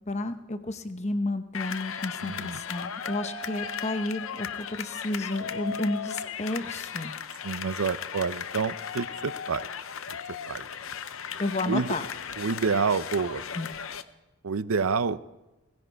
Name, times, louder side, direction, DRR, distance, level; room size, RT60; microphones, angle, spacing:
voice 1, 0.1-7.1 11.4-12.0 13.5-13.7, left 2 dB, 30° left, 9 dB, 0.9 m, -31 dB
sound 1, 1.5-14.0, left 7 dB, 65° left, 0.7 m, -36 dB
voice 2, 2.2-2.6 7.4-9.7 10.5-10.7 11.7-11.9 12.4-13.4 14.4-15.2, right 5 dB, 70° right, 15 dB, 0.6 m, -28 dB
Mallet percussion, 3.0-5.6, right 13 dB, 45° right, 2.2 m, -47 dB
17.5 x 16.0 x 4.6 m, 1.0 s
head